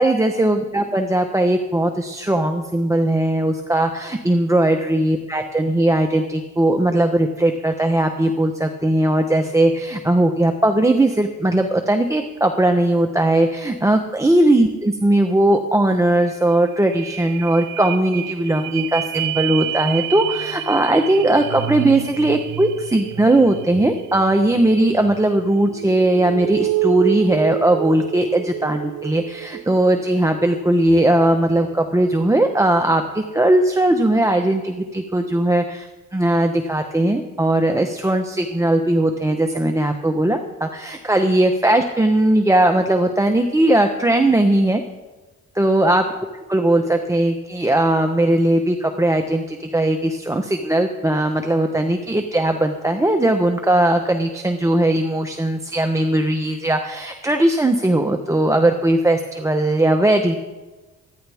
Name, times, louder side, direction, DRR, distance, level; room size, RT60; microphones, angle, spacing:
voice 1, 0.0-44.8 45.6-46.0 46.5-60.4, right 1 dB, 10° right, 4 dB, 1.0 m, -18 dB
sound 1, 16.1-16.2 16.5-32.4 32.9-33.0, right 14 dB, 85° right, 0.7 m, -29 dB
25.5 x 10.5 x 3.6 m, 1.2 s
cardioid pair, 90°, 30 cm